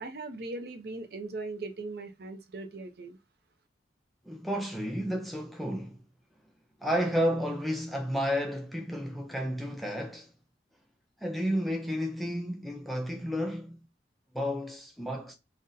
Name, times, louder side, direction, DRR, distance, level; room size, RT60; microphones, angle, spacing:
voice 1, 0.0-3.2, right 3 dB, 55° right, 0.5 m, -39 dB
voice 2, 4.3-6.1 6.8-10.3 11.2-13.8 14.3-15.3, equal, ahead, 0.3 m, -31 dB
3.8 x 2.1 x 2.5 m
head